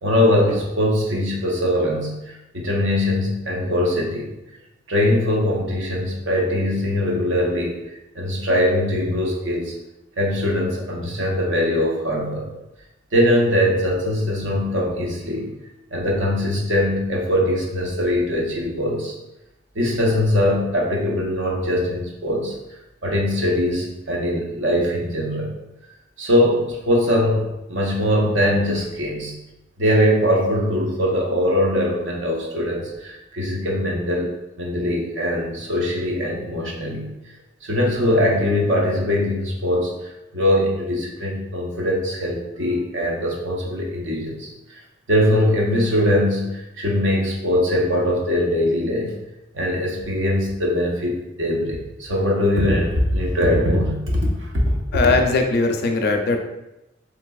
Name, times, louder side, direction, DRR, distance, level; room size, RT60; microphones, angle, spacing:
voice 1, 0.0-4.3 4.9-7.8 8.1-9.7 10.2-12.5 13.1-15.5 15.9-19.1 19.7-22.5 23.0-25.5 26.2-29.3 29.8-37.1 37.6-44.8 45.1-49.1 49.5-54.6, left 1 dB, 80° right, -2 dB, 0.7 m, -21 dB
voice 2, 54.9-56.4, left 3 dB, 55° left, 4 dB, 0.4 m, -19 dB
3.2 x 2.8 x 2.3 m, 0.92 s
head